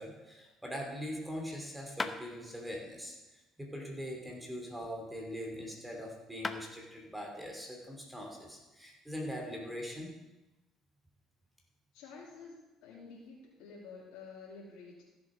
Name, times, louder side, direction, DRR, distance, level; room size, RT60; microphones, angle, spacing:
voice 1, 0.0-3.1 3.6-10.1, equal, 5° right, 0 dB, 2.9 m, -42 dB
sound 1, 2.0-2.2 4.2-5.5 6.1-6.2 6.4-6.6, left 3 dB, 20° left, 0.8 m, -40 dB
voice 2, 11.9-15.0, left 4 dB, 80° left, -6 dB, 2.8 m, -50 dB
15.0 x 7.3 x 5.0 m, 1.1 s
cardioid pair, 100°, 0 cm